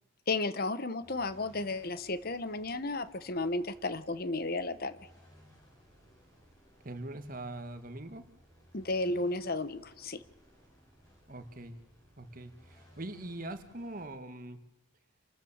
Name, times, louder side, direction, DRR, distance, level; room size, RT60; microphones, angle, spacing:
voice 1, 0.3-5.0 8.7-10.2, left 2 dB, 45° left, 14 dB, 1.0 m, -33 dB
sound 1, 1.0-14.0, equal, 15° left, 6.6 m, -61 dB
voice 2, 6.8-8.3 11.3-11.8 12.2-14.6, right 2 dB, 40° right, 9 dB, 1.6 m, -42 dB
27.0 x 13.5 x 7.3 m, 1.1 s
head